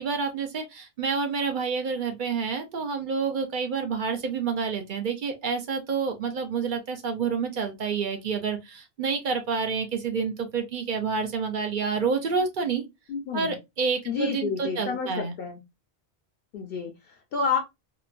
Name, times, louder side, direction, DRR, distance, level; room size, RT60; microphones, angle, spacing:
voice 1, 0.0-12.8 13.3-15.3, right 5 dB, 55° right, 0.6 m, -28 dB
voice 2, 13.1-13.6 14.1-15.6 16.5-17.6, left 5 dB, 65° left, 0.7 m, -30 dB
2.9 x 2.2 x 2.4 m
omnidirectional pair, 1.1 m